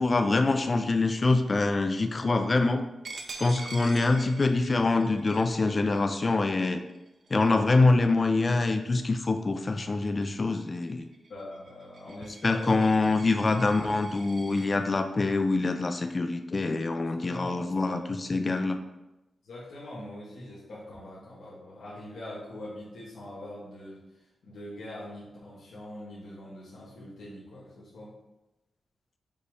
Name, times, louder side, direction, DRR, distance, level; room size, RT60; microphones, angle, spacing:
voice 1, 0.0-2.8 3.4-6.8 7.3-11.1 12.4-18.8, left 3 dB, 40° left, 7 dB, 0.3 m, -25 dB
Coin (dropping), 3.0-8.4 8.9-9.2 9.6-14.7, right 3 dB, 55° right, 0.6 m, -46 dB
voice 2, 11.3-12.9 13.4-13.9 17.0-18.0 19.4-24.0 24.4-28.1, left 1 dB, 85° left, -8 dB, 1.2 m, -43 dB
5.3 x 2.0 x 4.8 m, 0.97 s
cardioid pair, 70°, 0 cm